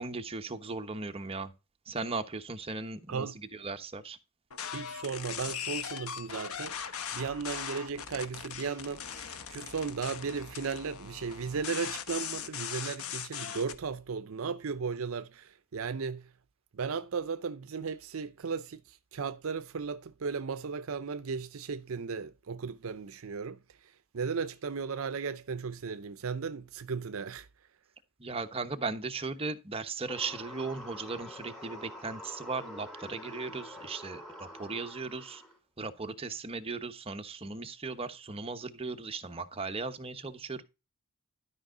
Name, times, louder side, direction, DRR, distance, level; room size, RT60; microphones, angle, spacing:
voice 1, 0.0-1.5 1.9-3.3 3.6-4.2 28.2-35.4 35.8-40.6, right 3 dB, 25° right, 1.0 m, -37 dB
voice 2, 3.1-3.4 4.6-16.3 16.7-27.7, right 5 dB, 65° right, 0.5 m, -36 dB
sound 1, 4.5-13.8, left 8 dB, 70° left, 1.1 m, -40 dB
sound 2, 30.1-35.6, equal, ahead, 3.6 m, -46 dB
12.5 x 5.5 x 3.8 m
head